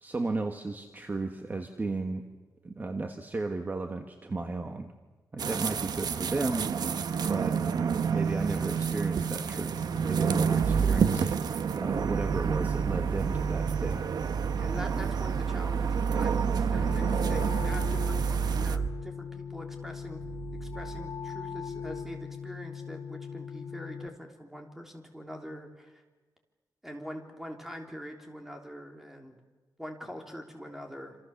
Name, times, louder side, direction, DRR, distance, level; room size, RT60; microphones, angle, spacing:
voice 1, 0.0-2.3 2.6-4.9 5.3-6.7 7.3-11.4 11.8-14.0 14.7-14.9, right 3 dB, 25° right, 5 dB, 1.4 m, -34 dB
sound 1, 5.4-18.8, right 6 dB, 75° right, 1.0 m, -30 dB
sound 2, 10.6-11.0 11.9-18.9 19.9-21.1 21.6-22.0, right 6 dB, 50° right, 1.4 m, -31 dB
voice 2, 14.6-20.2 20.6-26.0 26.8-29.4 29.8-31.2, equal, 5° right, 3 dB, 3.4 m, -43 dB
sound 3, 16.7-24.1, left 6 dB, 65° left, 2.3 m, -40 dB
27.5 x 27.0 x 7.2 m, 1.3 s
wide cardioid pair, 150°, 7 cm